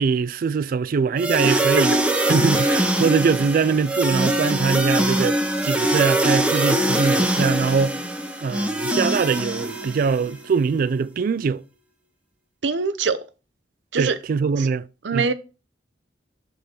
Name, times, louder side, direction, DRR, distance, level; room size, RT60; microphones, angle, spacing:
voice 1, 0.0-2.0 2.3-8.0 8.4-11.6 14.0-14.9 15.1-15.3, right 5 dB, 50° right, 0.3 m, -22 dB
sound 1, 1.2-10.3, right 1 dB, 5° right, 0.8 m, -22 dB
voice 2, 1.4-1.8 12.6-13.2 13.9-14.2 14.6-14.7 15.0-15.3, right 5 dB, 80° right, 0.7 m, -23 dB
6.3 x 5.4 x 4.3 m
head